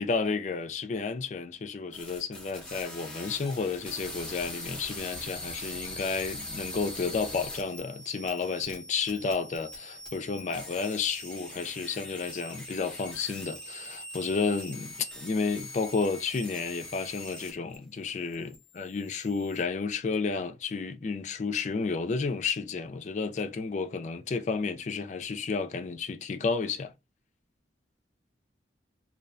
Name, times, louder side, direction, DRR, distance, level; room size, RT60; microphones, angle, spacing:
voice 1, 0.0-26.9, left 4 dB, 40° left, 0.3 m, -31 dB
sound 1, 1.9-17.8 18.1-19.6, left 1 dB, 5° left, 0.7 m, -42 dB
2.7 x 2.1 x 2.5 m
head